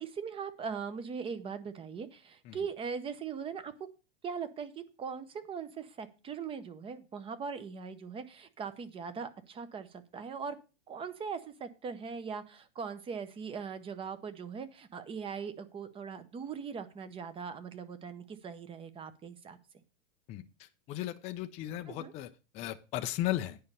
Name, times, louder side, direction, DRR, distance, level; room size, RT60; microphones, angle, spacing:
voice 1, 0.0-3.7 4.2-10.6 10.9-19.6 21.9-22.1, right 6 dB, 15° right, 13 dB, 0.7 m, -40 dB
voice 2, 20.3-23.6, left 14 dB, 20° left, 6 dB, 0.4 m, -36 dB
9.5 x 5.5 x 6.7 m, 0.31 s
hypercardioid pair, 140°, 37 cm